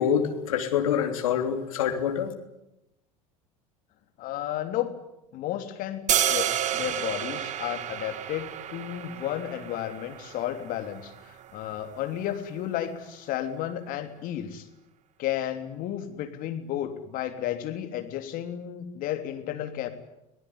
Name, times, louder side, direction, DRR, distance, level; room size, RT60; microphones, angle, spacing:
voice 1, 0.0-2.3, left 8 dB, 75° left, 6 dB, 3.2 m, -26 dB
voice 2, 4.2-4.9 5.3-14.7 15.2-19.9, left 11 dB, 55° left, 7 dB, 3.2 m, -33 dB
sound 1, 6.1-12.2, right 10 dB, 45° right, 2.0 m, -31 dB
25.0 x 18.5 x 9.9 m, 0.90 s
hypercardioid pair, 75°, 17 cm